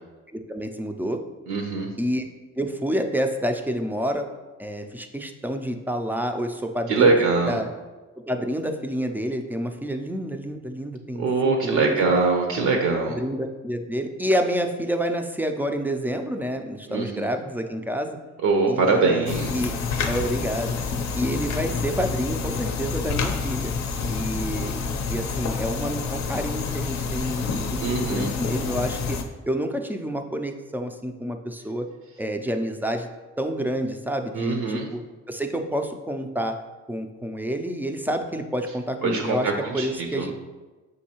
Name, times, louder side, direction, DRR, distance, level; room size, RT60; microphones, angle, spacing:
voice 1, 0.3-1.2 2.0-2.3 2.6-4.3 4.6-7.2 7.5-7.7 8.2-12.0 13.1-18.2 18.7-19.3 19.5-19.7 20.1-20.8 21.1-23.7 24.1-24.8 25.1-29.2 29.5-31.9 32.2-33.1 33.4-35.0 35.3-36.6 36.9-40.3, equal, 5° right, 5 dB, 0.3 m, -28 dB
voice 2, 1.5-1.9 6.9-7.6 11.1-13.2 16.9-17.3 18.4-19.6 20.1-20.2 24.0-24.2 27.8-28.3 34.3-34.9 39.0-40.3, right 4 dB, 75° right, 3 dB, 0.6 m, -23 dB
sound 1, 19.3-29.2, left 4 dB, 65° left, 0.5 m, -28 dB
6.3 x 2.6 x 2.9 m, 1.2 s
cardioid pair, 90°, 30 cm